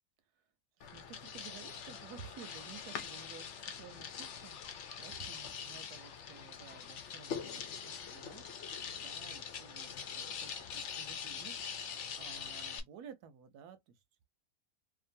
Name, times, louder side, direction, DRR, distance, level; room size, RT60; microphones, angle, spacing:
sound 1, 0.8-12.8, left 7 dB, 60° left, 0.8 m, -43 dB
voice 1, 0.8-8.4 9.0-11.5 12.1-14.2, right 7 dB, 85° right, 1.2 m, -54 dB
2.9 x 2.4 x 2.5 m
omnidirectional pair, 1.6 m